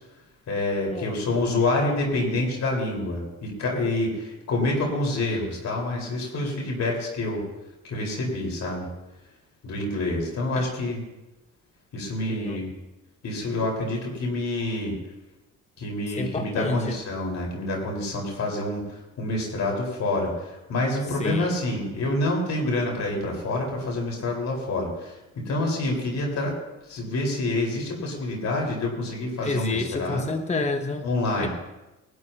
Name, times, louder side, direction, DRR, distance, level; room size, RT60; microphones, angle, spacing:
voice 1, 0.5-7.4 7.9-8.9 9.6-11.0 11.9-12.7 13.2-14.9 15.8-26.6 26.9-30.3 31.0-31.5, left 2 dB, 65° left, -1 dB, 4.6 m, -27 dB
voice 2, 12.3-12.6 16.2-17.0 21.2-21.6 29.4-31.1 31.4-31.5, left 3 dB, 20° left, 6 dB, 1.0 m, -29 dB
21.0 x 12.5 x 2.9 m, 1.0 s
cardioid pair, 90°, 30 cm